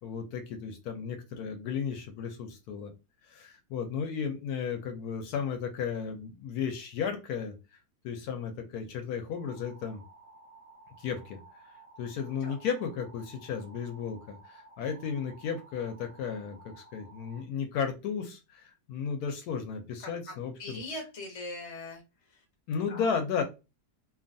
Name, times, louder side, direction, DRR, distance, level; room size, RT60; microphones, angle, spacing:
voice 1, 0.0-2.9 3.2-7.5 8.0-10.0 11.0-11.4 11.7-20.8 22.7-23.4, left 6 dB, 75° left, 6 dB, 1.0 m, -34 dB
sound 1, 9.3-17.4, right 3 dB, 55° right, 0.7 m, -55 dB
voice 2, 20.6-22.0 22.9-23.2, left 2 dB, 30° left, 1 dB, 0.6 m, -40 dB
2.7 x 2.3 x 2.5 m, 0.27 s
omnidirectional pair, 1.7 m